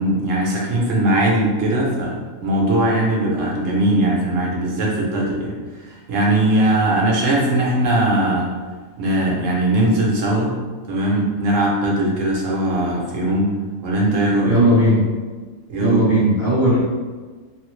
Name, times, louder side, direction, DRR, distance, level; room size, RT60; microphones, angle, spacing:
voice 1, 0.0-8.5 9.0-10.6 10.9-13.5 13.8-14.5 15.7-16.0, right 1 dB, 65° right, -4 dB, 1.1 m, -20 dB
voice 2, 14.4-15.0 15.8-16.8, right 1 dB, 15° right, -9 dB, 0.7 m, -16 dB
3.4 x 2.0 x 3.1 m, 1.4 s
omnidirectional pair, 1.5 m